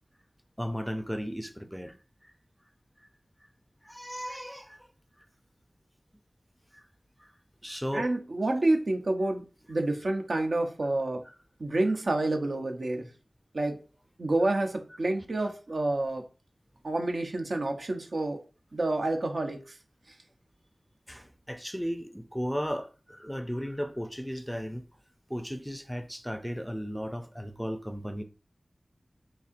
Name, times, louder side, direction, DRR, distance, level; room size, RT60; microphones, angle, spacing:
voice 1, 0.6-1.9 3.8-4.8 6.7-6.8 7.6-8.1 11.2-11.3 21.1-24.8 25.3-28.2, equal, ahead, 0.4 m, -35 dB
voice 2, 7.9-11.2 11.6-13.1 13.5-13.8 14.2-16.2 16.8-18.4 18.7-19.6, right 2 dB, 75° right, 0.6 m, -28 dB
4.1 x 2.8 x 2.5 m
cardioid pair, 40°, 0 cm